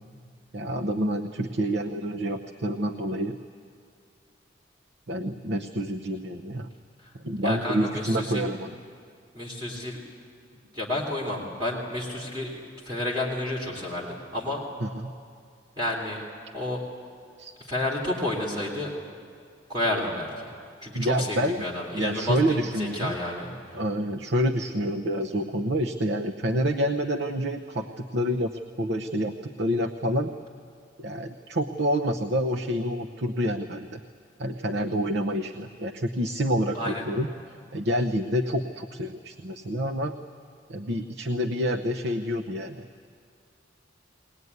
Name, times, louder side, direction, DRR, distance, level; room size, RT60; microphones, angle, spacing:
voice 1, 0.5-3.4 5.1-6.7 7.2-8.7 14.8-15.1 17.4-17.5 20.9-21.6 21.9-23.1 23.7-28.5 28.8-30.3 31.0-34.0 34.4-40.1 40.7-43.1, equal, 65° right, 4 dB, 0.9 m, -28 dB
voice 2, 7.4-8.4 9.3-10.0 10.7-14.6 15.8-16.2 16.5-16.8 17.7-18.9 19.7-20.5 20.8-23.5 36.7-37.1, left 1 dB, 25° right, -2 dB, 3.2 m, -30 dB
22.0 x 19.0 x 9.5 m, 2.3 s
head